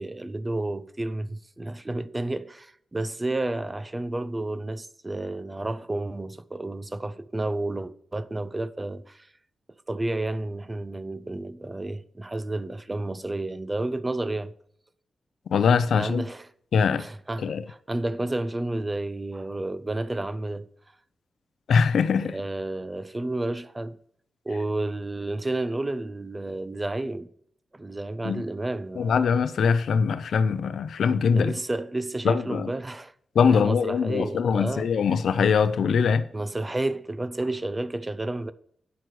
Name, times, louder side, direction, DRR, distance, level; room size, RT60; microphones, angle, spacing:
voice 1, 0.0-9.3 9.9-14.5 15.9-16.5 17.0-20.7 22.2-24.0 24.5-27.3 27.7-29.4 31.3-33.1 33.5-34.9 36.3-38.5, right 2 dB, 20° right, 0.5 m, -31 dB
voice 2, 15.5-16.2 16.7-17.0 17.4-17.6 21.7-22.4 28.2-28.4 29.0-31.5 32.2-32.7 33.4-36.2, left 6 dB, 85° left, 0.5 m, -22 dB
9.4 x 6.0 x 4.7 m
cardioid pair, 85°, 0 cm